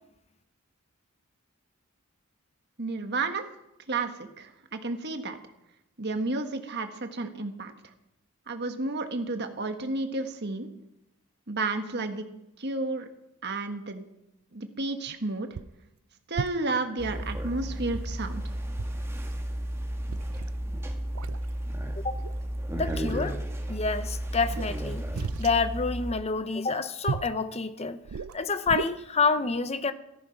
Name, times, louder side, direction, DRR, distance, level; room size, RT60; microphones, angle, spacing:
voice 1, 2.8-3.4 3.9-5.4 6.0-7.7 8.5-10.7 11.5-12.2 12.6-13.1 13.4-14.0 14.5-15.5 16.3-18.4, right 3 dB, 50° right, 7 dB, 1.5 m, -31 dB
sound 1, 15.1-15.2 15.5-15.8 16.3-16.8 17.9-18.4 18.8-19.0 19.3-19.4 19.8-20.6 21.1-21.5 22.2-22.4 22.8-23.4 24.4-25.6 27.1-27.4 28.0-28.9, right 6 dB, 75° right, 0.4 m, -36 dB
sound 2, 17.0-26.1, equal, 10° right, 1.6 m, -33 dB
voice 2, 22.7-23.4 23.7-25.0 25.4-28.0 28.3-29.9, left 4 dB, 30° left, 11 dB, 0.8 m, -28 dB
14.5 x 13.5 x 5.9 m, 0.88 s
head